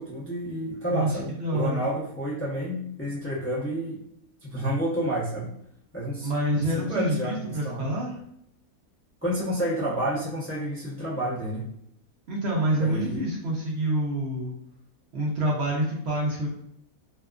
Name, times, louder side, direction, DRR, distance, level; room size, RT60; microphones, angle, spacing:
voice 1, 0.0-4.0 4.4-5.5 5.9-7.9 9.2-11.6 12.7-13.2, equal, 20° left, -8 dB, 0.3 m, -30 dB
voice 2, 0.9-1.8 6.2-8.2 12.3-14.5 15.1-16.5, right 1 dB, 65° right, -3 dB, 0.7 m, -27 dB
2.7 x 2.3 x 2.3 m, 0.74 s
omnidirectional pair, 1.5 m